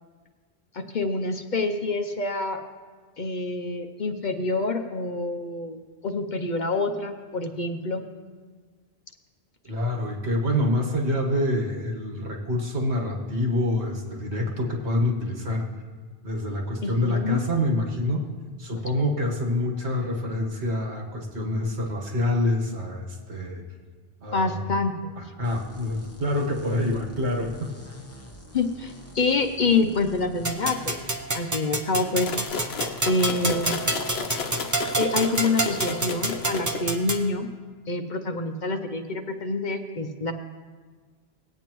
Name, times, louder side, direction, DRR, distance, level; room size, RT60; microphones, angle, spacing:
voice 1, 0.7-2.6 3.2-8.0 16.8-17.4 24.3-25.2 28.5-31.0 31.3-32.4 33.0-33.8 34.9-37.5 37.9-40.3, left 3 dB, 50° left, 6 dB, 0.7 m, -27 dB
voice 2, 9.6-15.7 16.2-18.2 18.6-23.6 24.2-24.5 25.2-27.7, left 1 dB, 80° right, 0 dB, 1.7 m, -26 dB
sound 1, 25.4-31.1, equal, 15° left, 0.8 m, -46 dB
sound 2, 30.4-37.3, right 2 dB, 20° right, 0.6 m, -29 dB
sound 3, 32.2-37.1, left 5 dB, 70° left, 1.0 m, -33 dB
18.5 x 8.8 x 3.0 m, 1.5 s
omnidirectional pair, 1.1 m